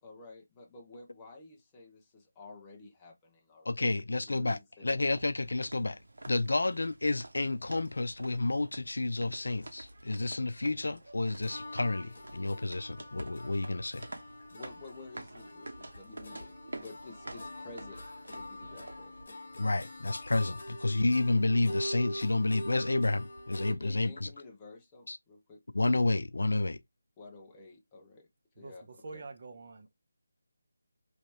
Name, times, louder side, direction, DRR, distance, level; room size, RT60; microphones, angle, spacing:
voice 1, 0.0-3.7 3.9-5.0 14.5-19.1 23.8-25.6 27.2-28.3 28.6-28.9 29.1-29.2, left 3 dB, 10° left, 0.6 m, -51 dB
voice 2, 3.6-6.0 6.3-14.1 19.5-24.3 25.1-25.2 25.7-26.8, left 2 dB, 85° left, 0.4 m, -30 dB
sound 1, 5.1-19.2, right 2 dB, 80° right, 0.9 m, -49 dB
sound 2, 11.4-23.7, equal, 35° left, 1.4 m, -44 dB
voice 3, 28.6-29.9, right 3 dB, 35° right, 0.6 m, -46 dB
3.1 x 2.8 x 3.2 m
figure-of-eight pair, 175°, 0 cm